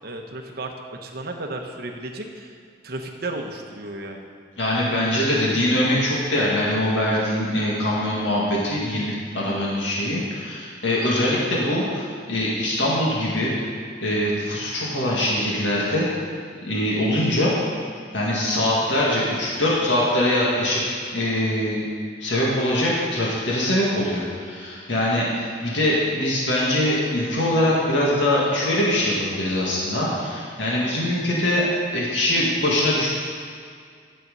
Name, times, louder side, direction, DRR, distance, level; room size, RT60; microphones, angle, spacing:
voice 1, 0.0-2.6 2.8-4.3, right 2 dB, 55° right, 3 dB, 1.1 m, -34 dB
voice 2, 4.6-13.5 14.0-16.1 16.6-17.5 18.1-20.8 21.1-21.9 22.2-31.7 31.9-33.1, left 1 dB, 75° left, -5 dB, 2.1 m, -23 dB
12.0 x 7.7 x 5.5 m, 2.2 s
head